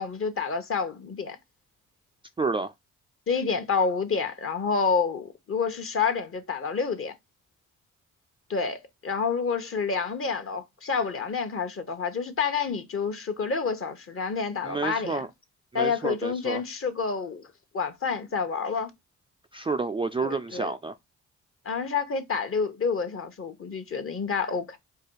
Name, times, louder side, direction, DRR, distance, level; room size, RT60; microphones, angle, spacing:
voice 1, 0.0-1.4 3.3-7.1 8.5-15.3 15.7-17.4 17.7-18.9 20.2-20.7 21.6-24.8, left 5 dB, 45° left, 1.0 m, -28 dB
voice 2, 2.4-2.7 14.6-15.3 15.7-16.6 19.5-20.9, right 4 dB, 15° right, 0.3 m, -29 dB
4.7 x 2.3 x 4.6 m
cardioid pair, 75°, 31 cm